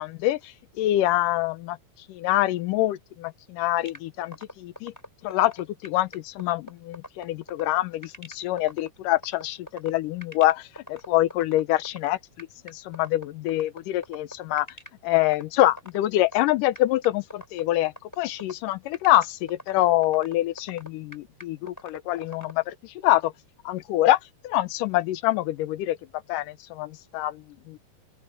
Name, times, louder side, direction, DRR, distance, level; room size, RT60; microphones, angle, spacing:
voice 1, 0.0-1.8 2.1-4.9 5.2-14.7 15.0-23.3 23.7-24.2 24.4-26.0 26.3-27.8, left 15 dB, 85° left, 2.4 m, -25 dB
sound 1, 3.9-22.5, equal, 5° left, 6.3 m, -41 dB
open air
omnidirectional pair, 3.8 m